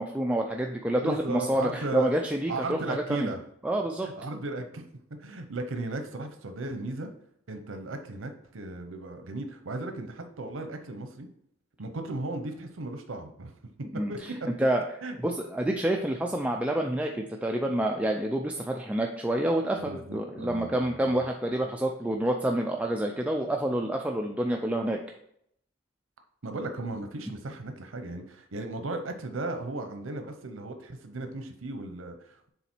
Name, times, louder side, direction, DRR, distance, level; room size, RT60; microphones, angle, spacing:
voice 1, 0.0-3.3 3.6-4.1 13.9-14.3 14.6-14.8 15.2-25.0, right 1 dB, 5° right, 2 dB, 0.4 m, -28 dB
voice 2, 1.0-2.1 2.5-3.4 4.0-4.8 5.2-7.1 7.5-11.3 11.8-13.5 14.1-14.5 15.0-15.2 19.7-21.0 26.4-32.5, right 2 dB, 90° right, 7 dB, 0.7 m, -36 dB
6.9 x 4.0 x 4.4 m, 0.71 s
head